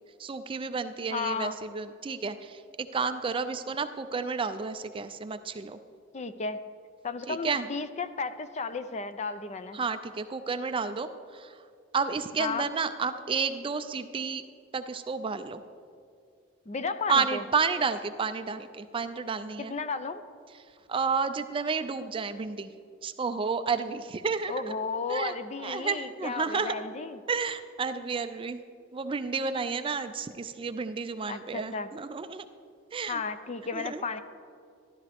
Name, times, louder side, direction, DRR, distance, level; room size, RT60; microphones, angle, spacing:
voice 1, 0.2-5.8 7.3-7.7 9.7-11.6 11.9-14.4 14.7-15.6 17.1-19.7 20.9-22.7 23.0-24.8 25.1-25.3 25.6-26.8 27.3-28.6 28.9-32.4 32.9-33.2 33.7-34.0, right 5 dB, 25° right, 10 dB, 0.4 m, -31 dB
voice 2, 1.1-1.6 6.1-6.6 7.0-9.8 12.4-12.7 16.7-17.4 19.6-20.2 24.5-27.2 31.3-31.9 33.1-34.2, left 4 dB, 35° left, 11 dB, 0.5 m, -33 dB
13.0 x 12.5 x 3.5 m, 2.3 s
head